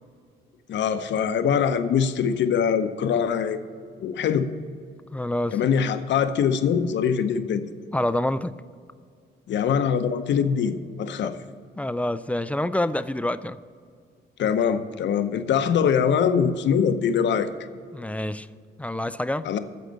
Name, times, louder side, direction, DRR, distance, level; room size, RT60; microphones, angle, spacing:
voice 1, 0.7-3.6 4.0-4.5 5.5-7.6 9.5-11.4 14.4-17.5 19.4-19.6, left 7 dB, 65° left, 10 dB, 0.7 m, -23 dB
voice 2, 5.1-5.6 7.9-8.5 11.2-11.3 11.8-13.6 17.9-18.5 18.8-19.5, left 1 dB, 5° left, 14 dB, 0.3 m, -27 dB
9.3 x 6.6 x 7.3 m, 2.1 s
cardioid pair, 90°, 20 cm